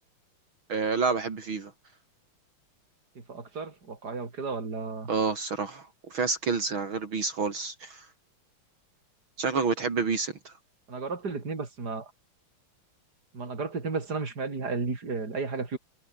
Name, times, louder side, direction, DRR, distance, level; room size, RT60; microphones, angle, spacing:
voice 1, 0.7-1.7 5.1-8.1 9.4-10.5, right 4 dB, 65° right, 3.7 m, -29 dB
voice 2, 3.2-5.1 10.9-12.1 13.3-15.8, right 4 dB, 45° right, 4.3 m, -33 dB
omnidirectional pair, 2.4 m